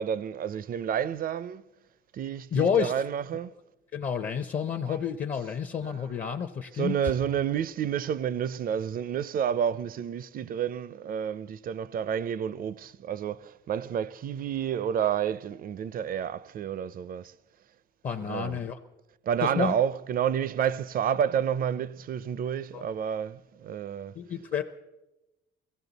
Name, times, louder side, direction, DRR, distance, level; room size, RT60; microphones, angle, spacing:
voice 1, 0.0-1.6 2.1-3.5 4.9-5.0 5.4-5.5 5.9-6.1 6.7-17.3 18.2-18.6 19.3-24.2, right 8 dB, 45° right, 0.4 m, -30 dB
voice 2, 2.5-3.0 3.9-7.0 18.0-18.8 19.4-19.8 22.7-22.8 24.1-24.6, left 7 dB, 40° left, 0.6 m, -29 dB
23.0 x 16.0 x 4.0 m
cardioid pair, 145°, 20 cm